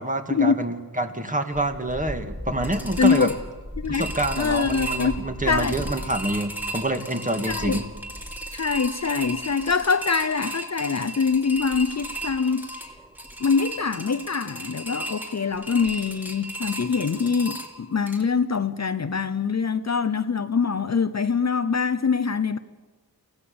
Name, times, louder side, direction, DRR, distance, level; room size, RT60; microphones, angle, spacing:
voice 1, 0.0-3.3 3.9-7.9, right 2 dB, 20° right, 1.9 m, -27 dB
sound 1, 1.5-18.2, right 1 dB, 5° right, 2.6 m, -35 dB
voice 2, 3.0-3.3 3.8-4.1 4.4-5.1 5.4-5.9 7.5-7.8 8.5-12.9 13.4-22.6, left 5 dB, 45° left, 0.7 m, -24 dB
24.5 x 16.0 x 7.0 m
wide cardioid pair, 65°, 38 cm